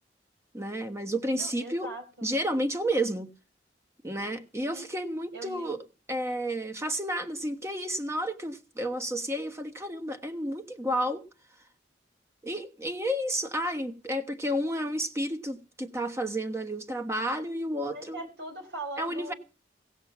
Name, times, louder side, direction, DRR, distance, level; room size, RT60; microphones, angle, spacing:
voice 1, 0.5-1.9 2.2-3.3 4.0-5.8 6.1-11.2 12.4-18.3 19.0-19.3, right 1 dB, 15° right, 1.2 m, -31 dB
voice 2, 1.4-2.3 4.7-4.9 5.3-5.8 17.9-19.4, right 1 dB, 70° right, 4.5 m, -41 dB
17.5 x 6.5 x 7.3 m
head